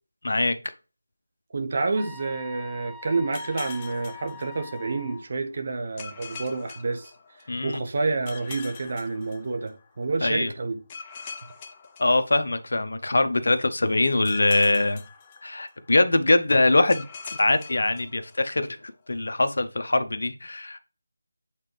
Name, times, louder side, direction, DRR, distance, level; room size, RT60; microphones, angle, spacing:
voice 1, 0.2-0.6 7.5-7.8 10.2-10.5 12.0-15.0 15.4-18.8 19.1-20.8, left 2 dB, 60° left, 0.8 m, -23 dB
voice 2, 1.5-7.1 7.6-10.8, right 3 dB, 40° right, 0.9 m, -29 dB
sound 1, 2.0-5.2, left 4 dB, 10° right, 0.8 m, -43 dB
sound 2, 3.3-5.1 6.0-7.7 8.3-10.0 10.9-12.9 14.2-16.0 16.9-18.7, left 5 dB, 20° left, 0.6 m, -43 dB
8.3 x 3.7 x 3.3 m
figure-of-eight pair, 165°, 0 cm